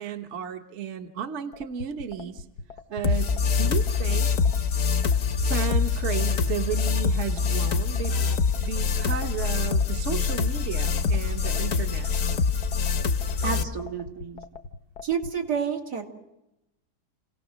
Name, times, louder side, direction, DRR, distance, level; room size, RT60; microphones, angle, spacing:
voice 1, 0.0-2.4 2.9-4.3 5.3-8.3 8.6-12.1, right 7 dB, 50° right, 6 dB, 1.2 m, -33 dB
sound 1, 1.5-15.3, left 3 dB, 75° left, 1.5 m, -40 dB
sound 2, 3.0-13.6, left 5 dB, 55° left, 1.2 m, -24 dB
voice 2, 13.4-14.4 15.0-16.1, right 6 dB, 80° right, 0 dB, 2.8 m, -30 dB
29.0 x 17.5 x 6.2 m, 0.93 s
omnidirectional pair, 1.7 m